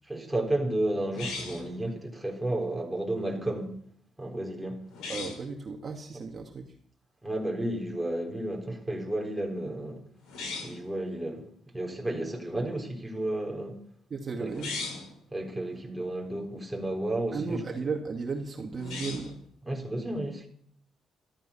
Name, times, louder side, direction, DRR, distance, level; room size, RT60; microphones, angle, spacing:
voice 1, 0.0-3.8 4.2-4.9 6.1-6.2 7.2-10.1 10.6-13.8 14.4-14.5 15.3-17.6 19.6-20.5, right 1 dB, 5° right, 4.1 m, -32 dB
sound 1, 1.1-1.7 4.9-5.4 10.2-10.9 14.5-15.1 18.7-19.4, left 3 dB, 85° left, 6.0 m, -37 dB
voice 2, 5.1-6.8 14.1-14.8 17.3-19.4, right 4 dB, 40° right, 2.2 m, -35 dB
14.0 x 13.0 x 5.7 m
cardioid pair, 90°, 0 cm